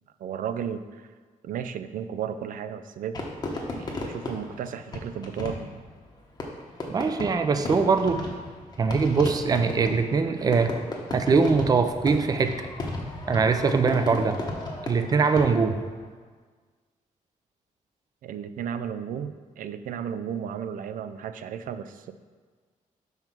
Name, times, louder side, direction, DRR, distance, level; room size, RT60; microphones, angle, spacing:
voice 1, 0.2-1.1 1.4-3.3 3.8-5.7 18.2-22.1, right 8 dB, 85° right, 11 dB, 0.4 m, -34 dB
Fireworks, 3.1-15.9, left 2 dB, 30° left, 0.9 m, -35 dB
voice 2, 6.9-8.2 8.8-10.7 11.1-12.5 13.3-14.4 14.8-15.8, right 5 dB, 30° right, 8 dB, 0.4 m, -22 dB
5.6 x 4.5 x 5.9 m, 1.5 s
wide cardioid pair, 170°, 14 cm